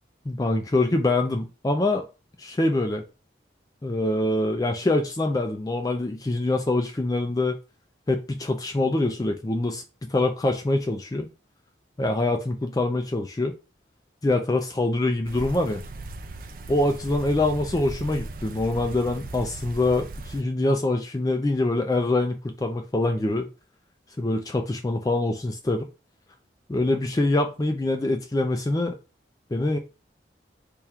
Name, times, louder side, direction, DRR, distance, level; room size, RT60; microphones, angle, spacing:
voice 1, 0.3-2.0 2.4-3.0 3.8-7.6 8.1-11.3 12.0-13.6 14.2-15.8 16.7-23.5 24.2-25.9 26.7-29.0 29.5-29.8, left 2 dB, 20° left, 0.3 m, -24 dB
sound 1, 15.2-20.4, right 2 dB, 50° right, 0.4 m, -38 dB
3.5 x 2.3 x 4.3 m
head